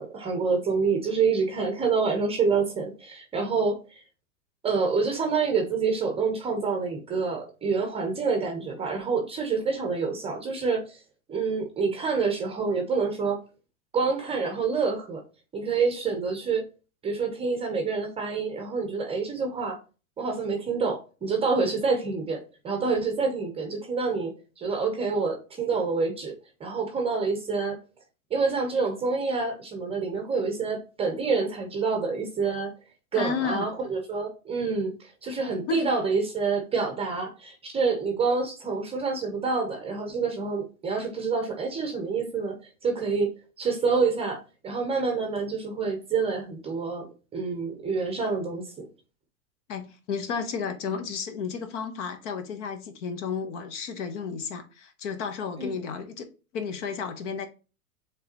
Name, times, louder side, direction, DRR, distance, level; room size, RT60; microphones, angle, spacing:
voice 1, 0.0-4.0 4.6-11.0 11.3-13.4 13.9-15.2 15.5-16.6 17.0-19.8 20.2-26.3 26.6-27.8 28.3-32.7 33.1-48.9 55.6-55.8, right 4 dB, 15° right, 0.7 m, -27 dB
voice 2, 33.1-33.7 35.7-35.9 49.7-56.3 56.5-57.5, left 6 dB, 55° left, 1.0 m, -32 dB
5.4 x 3.4 x 2.8 m
hypercardioid pair, 120°, 44 cm